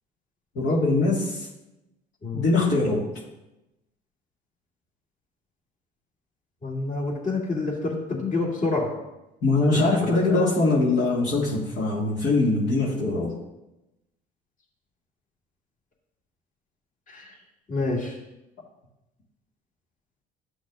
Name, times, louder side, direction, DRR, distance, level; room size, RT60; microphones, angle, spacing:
voice 1, 0.6-1.5 2.3-3.0 9.4-13.3, left 2 dB, 65° left, -6 dB, 2.0 m, -22 dB
voice 2, 6.6-8.9 9.7-10.5 17.1-17.3 17.7-18.2, left 3 dB, 40° left, -2 dB, 2.5 m, -28 dB
11.5 x 6.2 x 2.4 m, 0.93 s
supercardioid pair, 75°, 20 cm